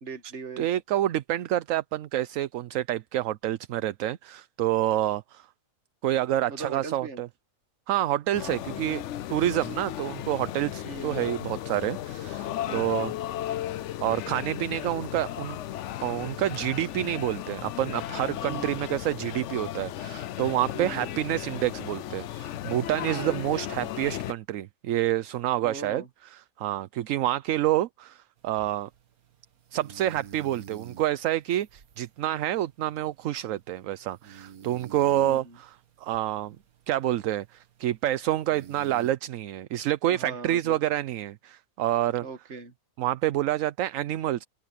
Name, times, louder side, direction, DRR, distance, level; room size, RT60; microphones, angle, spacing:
voice 1, 0.0-0.7 6.5-7.2 10.8-11.2 12.7-13.1 18.5-18.8 20.7-21.2 23.1-23.7 25.6-26.1 35.0-35.6 40.1-40.8 42.2-42.7, right 4 dB, 55° right, 1.7 m, -40 dB
voice 2, 0.6-5.5 6.0-7.3 7.9-9.0 9.3-13.1 14.0-15.6 16.0-26.0 26.3-28.9 29.7-36.6 36.9-42.3 43.0-44.4, right 13 dB, 70° right, 1.0 m, -28 dB
sound 1, 8.3-24.3, left 12 dB, 65° left, 0.8 m, -35 dB
sound 2, 28.4-39.1, right 8 dB, 90° right, 1.7 m, -51 dB
open air
omnidirectional pair, 1.5 m